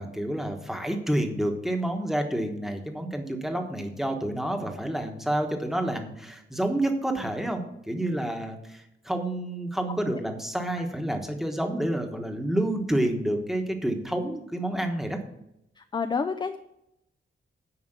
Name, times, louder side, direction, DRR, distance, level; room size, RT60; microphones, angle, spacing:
voice 1, 0.0-15.2, right 1 dB, ahead, 4 dB, 1.1 m, -29 dB
voice 2, 15.8-16.6, left 5 dB, 25° left, 9 dB, 0.4 m, -29 dB
9.7 x 5.1 x 6.6 m, 0.82 s
wide cardioid pair, 165°, 20 cm